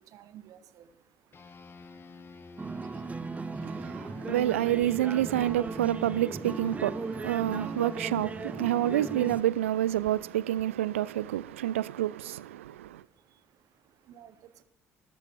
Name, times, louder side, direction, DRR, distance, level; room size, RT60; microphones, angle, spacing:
voice 1, 0.0-4.6 12.5-14.6, right 10 dB, 55° right, 0.9 m, -59 dB
sound 1, 1.3-11.1, left 3 dB, 35° left, 1.5 m, -49 dB
sound 2, 2.6-9.4, right 4 dB, 20° right, 0.5 m, -37 dB
voice 2, 3.6-13.0, right 13 dB, 75° right, 0.3 m, -28 dB
13.5 x 11.0 x 4.5 m
figure-of-eight pair, 50°, 7 cm